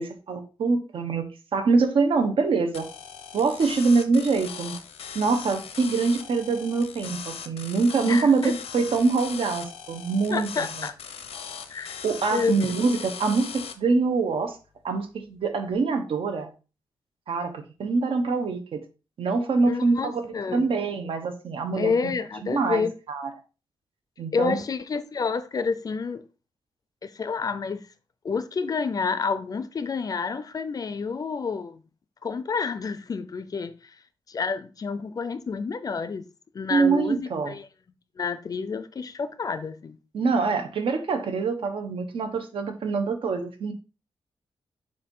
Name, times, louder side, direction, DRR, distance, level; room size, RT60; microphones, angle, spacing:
voice 1, 0.0-2.9 3.3-4.7 5.1-10.9 12.0-14.6 14.8-16.5 17.3-18.8 19.2-22.1 22.4-23.3 24.2-24.6 36.7-37.6 40.1-43.7, right 4 dB, 65° right, 1.1 m, -25 dB
sound 1, 2.7-13.7, left 7 dB, 90° left, 0.7 m, -39 dB
voice 2, 8.0-8.5 10.3-10.9 11.7-12.0 12.3-12.6 19.7-20.7 21.7-22.9 24.3-26.2 27.0-27.8 28.2-31.8 32.2-33.7 34.3-36.3 36.5-37.6 38.2-40.0, left 5 dB, 40° left, 0.5 m, -29 dB
6.7 x 2.7 x 5.4 m
wide cardioid pair, 155°, 10 cm